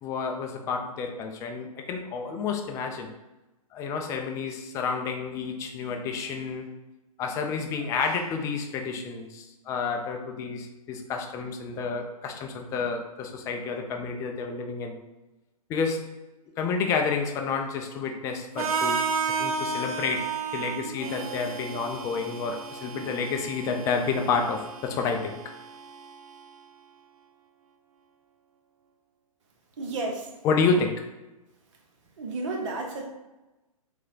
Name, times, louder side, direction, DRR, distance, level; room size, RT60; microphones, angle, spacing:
voice 1, 0.0-3.1 3.7-6.7 7.2-15.0 15.7-16.1 16.6-19.0 19.4-25.6 30.4-31.1, left 5 dB, 15° left, 4 dB, 0.4 m, -30 dB
Harmonica, 18.6-26.5, right 5 dB, 70° right, 0.6 m, -33 dB
voice 2, 29.8-30.3 32.2-33.1, right 3 dB, 55° right, 1 dB, 1.1 m, -32 dB
3.4 x 3.1 x 3.8 m, 1.0 s
hypercardioid pair, 130°, 19 cm